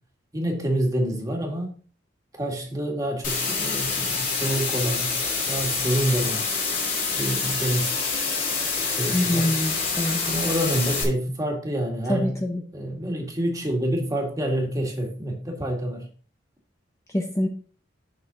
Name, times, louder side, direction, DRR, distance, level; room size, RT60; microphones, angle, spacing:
voice 1, 0.3-1.7 2.3-5.2 5.5-6.5 7.1-7.9 8.9-9.5 10.2-12.4 12.7-16.1, right 1 dB, 20° right, 0 dB, 2.0 m, -27 dB
sound 1, 3.2-11.0, left 4 dB, 45° left, 2.6 m, -26 dB
voice 2, 9.1-10.2 12.1-12.6 17.1-17.5, left 1 dB, 15° left, 2 dB, 0.7 m, -25 dB
6.8 x 6.5 x 3.8 m, 0.42 s
head